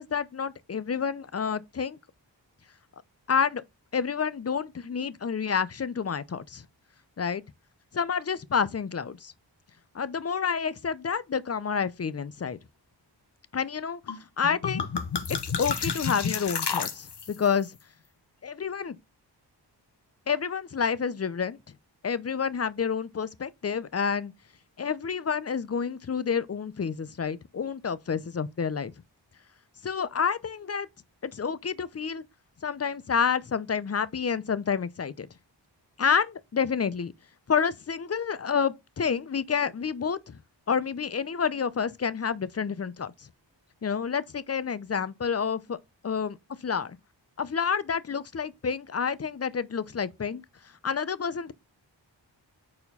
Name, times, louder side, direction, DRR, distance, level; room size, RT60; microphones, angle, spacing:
voice 1, 0.0-2.0 3.3-3.6 3.9-6.6 7.2-7.4 7.9-9.3 9.9-12.6 13.5-14.0 14.4-14.9 15.3-17.7 18.4-19.0 20.3-21.6 22.0-24.3 24.8-28.9 29.8-30.9 31.2-32.2 32.6-35.3 36.0-37.1 37.5-40.4 40.7-43.1 43.8-45.8 46.0-47.0 47.4-50.4 50.8-51.5, left 6 dB, 35° left, 0.6 m, -29 dB
sound 1, 14.1-14.2 14.4-17.5, left 6 dB, 60° left, 1.0 m, -30 dB
4.4 x 4.3 x 5.4 m
cardioid pair, 40°, 45 cm